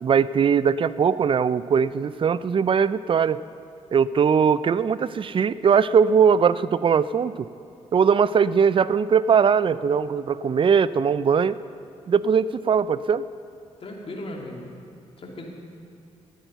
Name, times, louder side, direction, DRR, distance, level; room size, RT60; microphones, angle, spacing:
voice 1, 0.0-3.4 3.9-7.5 7.9-11.6 12.1-13.3, right 6 dB, 40° right, 17 dB, 0.4 m, -20 dB
voice 2, 13.8-14.7 15.2-15.5, left 1 dB, 50° left, -1 dB, 2.6 m, -36 dB
13.5 x 9.0 x 6.8 m, 2.5 s
cardioid pair, 70°, 13 cm